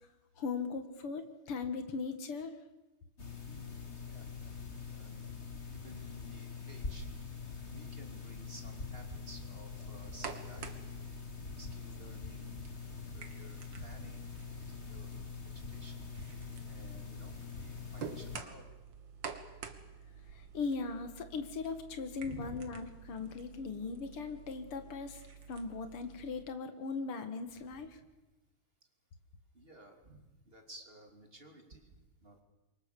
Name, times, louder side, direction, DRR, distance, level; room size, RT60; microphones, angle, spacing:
voice 1, 0.4-2.5 20.3-25.2 25.5-28.0, left 4 dB, 85° left, 8 dB, 2.6 m, -39 dB
sound 1, 3.2-18.4, left 5 dB, 30° left, 3.0 m, -44 dB
voice 2, 3.4-4.6 4.9-5.4 5.7-7.1 7.7-10.9 11.6-16.1 16.4-18.7 22.2-22.7 27.7-28.1 29.5-32.4, right 1 dB, 25° right, 3 dB, 3.2 m, -54 dB
sound 2, 9.9-26.4, right 6 dB, 60° right, 2.2 m, -49 dB
27.5 x 24.0 x 6.9 m, 1.1 s
omnidirectional pair, 2.4 m